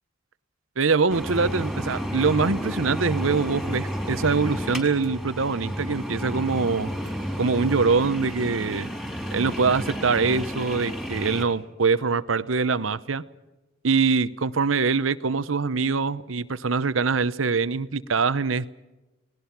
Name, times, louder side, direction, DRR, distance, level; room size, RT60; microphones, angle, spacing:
voice 1, 0.8-6.9 7.4-8.9 9.3-13.2 13.8-18.7, right 4 dB, 90° right, 16 dB, 0.9 m, -24 dB
sound 1, 1.1-11.4, equal, ahead, 4.3 m, -31 dB
30.0 x 19.0 x 5.9 m, 1.1 s
head